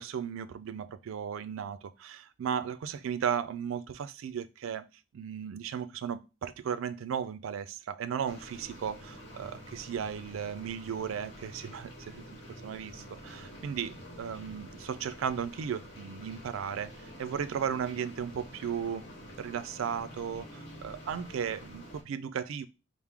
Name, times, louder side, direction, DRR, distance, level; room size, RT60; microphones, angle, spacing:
voice 1, 0.0-4.8 5.1-19.0 19.4-22.7, right 7 dB, 80° right, 0.3 m, -35 dB
sound 1, 8.3-22.0, equal, 55° left, 1.1 m, -48 dB
4.5 x 2.0 x 3.5 m
head